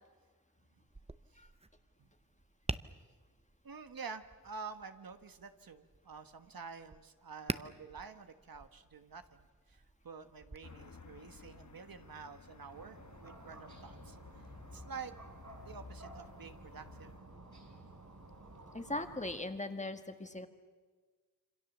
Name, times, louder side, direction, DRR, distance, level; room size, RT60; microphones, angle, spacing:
Tap, 0.9-10.6, right 2 dB, 15° right, 0.7 m, -47 dB
voice 1, 3.6-14.4 14.7-15.1 15.6-17.3, right 5 dB, 75° right, 9 dB, 1.4 m, -49 dB
sound 1, 10.6-17.2, left 4 dB, 55° left, 1.4 m, -55 dB
sound 2, 12.7-19.4, right 2 dB, 55° right, 6.5 m, -54 dB
voice 2, 18.7-20.5, left 2 dB, 20° left, 7 dB, 1.7 m, -39 dB
27.0 x 26.0 x 7.3 m, 1.4 s
wide cardioid pair, 90°, 35 cm